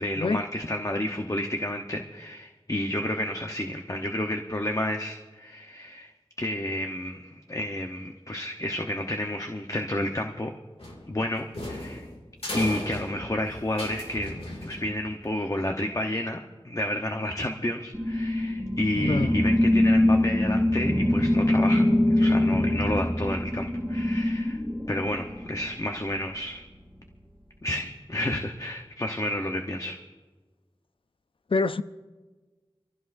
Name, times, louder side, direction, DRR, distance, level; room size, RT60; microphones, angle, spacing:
voice 1, 0.0-6.1 6.4-10.5 11.1-12.1 12.5-14.4 14.6-16.4 16.6-24.6 24.9-26.6 27.6-30.0, left 1 dB, 35° left, 0.9 m, -30 dB
sound 1, 10.8-15.2, left 1 dB, 90° left, 2.4 m, -37 dB
sound 2, 17.9-25.7, left 1 dB, 5° left, 2.0 m, -23 dB
voice 2, 19.0-19.3 31.5-31.8, left 3 dB, 65° left, 0.5 m, -25 dB
25.5 x 15.5 x 2.6 m
wide cardioid pair, 50°, 10 cm